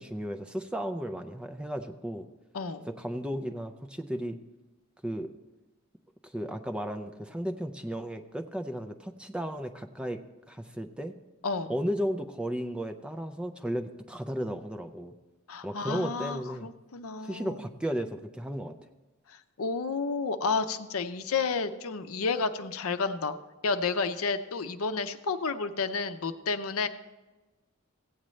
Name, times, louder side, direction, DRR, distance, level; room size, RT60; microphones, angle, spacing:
voice 1, 0.0-2.3 2.9-4.4 5.0-5.3 6.2-10.2 10.5-11.1 11.7-15.1 15.6-16.7 17.2-18.8, equal, 5° right, 5 dB, 0.4 m, -34 dB
voice 2, 2.5-2.9 11.4-11.7 15.5-17.6 19.3-23.3 23.6-26.9, left 4 dB, 75° left, 9 dB, 0.6 m, -31 dB
16.5 x 8.7 x 3.2 m, 1.2 s
head